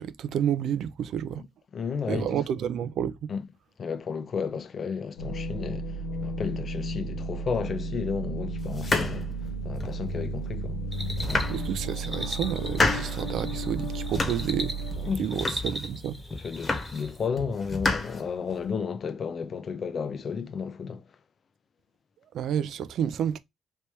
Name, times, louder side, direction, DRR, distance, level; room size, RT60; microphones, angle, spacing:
voice 1, 0.0-1.4 2.1-3.1 11.5-14.7 15.2-16.2 22.3-23.4, right 9 dB, 75° right, 0.4 m, -30 dB
voice 2, 1.7-2.4 3.3-3.5 3.8-5.9 6.2-9.3 9.6-10.8 15.0-15.6 16.3-21.0, left 6 dB, 50° left, 0.6 m, -33 dB
sound 1, 5.2-15.1, right 2 dB, 90° left, 0.7 m, -33 dB
sound 2, 8.7-10.0 10.6-10.7 11.1-12.0 12.4-13.2 13.7-14.6 14.9-15.9 16.3-17.1 17.4-18.7, left 3 dB, 30° left, 1.2 m, -30 dB
sound 3, 10.9-17.3, equal, ahead, 1.2 m, -39 dB
3.2 x 2.9 x 3.0 m
cardioid pair, 90°, 0 cm